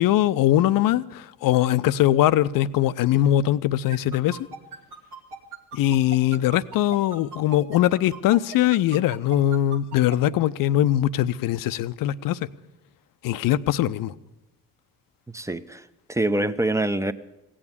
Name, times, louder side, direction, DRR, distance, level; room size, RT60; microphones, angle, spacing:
voice 1, 0.0-4.4 5.7-12.5 13.2-14.1, left 13 dB, 50° left, 16 dB, 0.6 m, -21 dB
sound 1, 3.9-10.2, right 5 dB, 80° right, 1.7 m, -37 dB
voice 2, 15.3-17.1, right 2 dB, 5° right, 12 dB, 0.7 m, -25 dB
16.5 x 8.7 x 9.7 m, 0.98 s
figure-of-eight pair, 50°, 45 cm